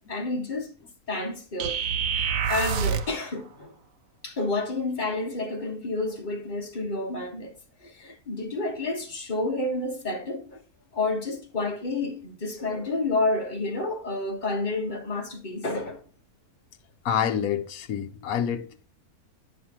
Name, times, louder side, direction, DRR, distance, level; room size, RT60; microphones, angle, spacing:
voice 1, 0.1-0.7 1.1-1.8 2.0-3.7 4.2-7.5 7.8-10.6 10.9-16.0, left 2 dB, 35° left, 1.4 m, -30 dB
sound 1, 1.6-3.2, right 7 dB, 70° right, 1.0 m, -27 dB
voice 2, 17.0-18.8, left 8 dB, 75° left, 1.2 m, -27 dB
10.0 x 6.0 x 2.9 m
omnidirectional pair, 1.5 m